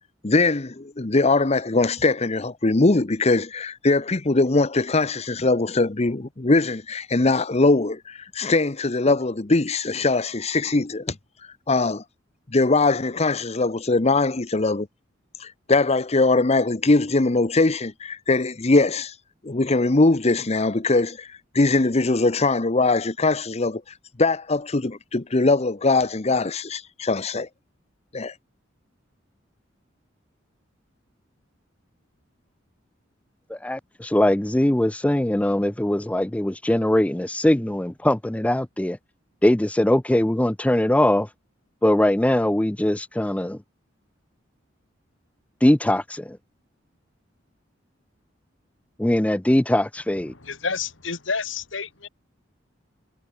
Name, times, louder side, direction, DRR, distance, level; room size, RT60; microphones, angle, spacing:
voice 1, 0.2-11.1 11.7-12.0 12.5-14.9 15.4-19.1 19.4-23.8 24.2-27.5 28.1-28.3, left 3 dB, 35° left, 0.9 m, -21 dB
voice 2, 33.5-39.0 39.4-41.3 41.8-43.6 45.6-46.4 49.0-50.3, left 1 dB, 5° left, 0.5 m, -21 dB
voice 3, 50.3-52.1, left 5 dB, 85° left, 2.7 m, -29 dB
head